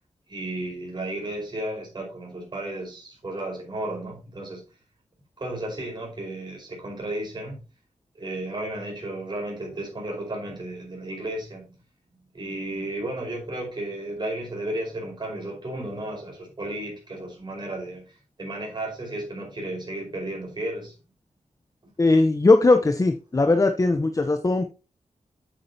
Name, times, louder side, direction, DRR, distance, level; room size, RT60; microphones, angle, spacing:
voice 1, 0.3-4.6 5.4-7.6 8.1-11.7 12.1-20.9 23.3-23.4 23.9-24.0, right 1 dB, 40° right, 5.0 m, -33 dB
voice 2, 22.0-24.7, left 3 dB, 25° left, 0.9 m, -19 dB
8.9 x 8.3 x 2.9 m
wide cardioid pair, 115°, 12 cm